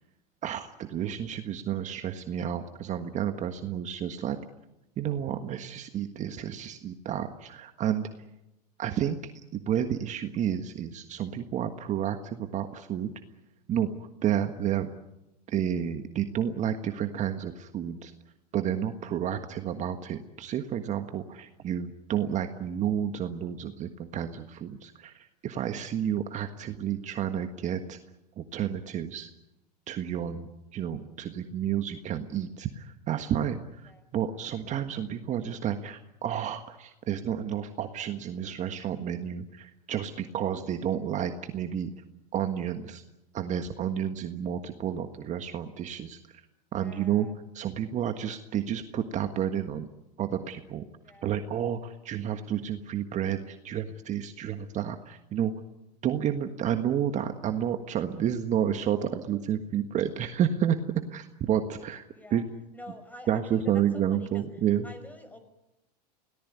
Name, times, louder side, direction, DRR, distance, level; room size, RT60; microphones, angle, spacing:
voice 1, 0.4-4.4 5.0-8.1 8.8-9.2 9.5-13.1 13.7-13.9 14.2-14.9 15.5-18.1 18.5-28.0 28.4-29.3 29.9-41.9 42.3-43.0 43.3-46.2 46.7-47.3 47.5-49.9 50.2-50.9 51.2-55.5 56.0-60.8 61.1-62.0 62.3-62.4 63.3-64.9, right 9 dB, 35° right, 7 dB, 1.5 m, -30 dB
voice 2, 46.8-47.3 51.0-51.3 62.1-62.4 62.7-64.4 64.8-65.4, left 1 dB, 10° left, 10 dB, 5.2 m, -48 dB
25.0 x 18.0 x 9.5 m, 0.93 s
hypercardioid pair, 110°, 21 cm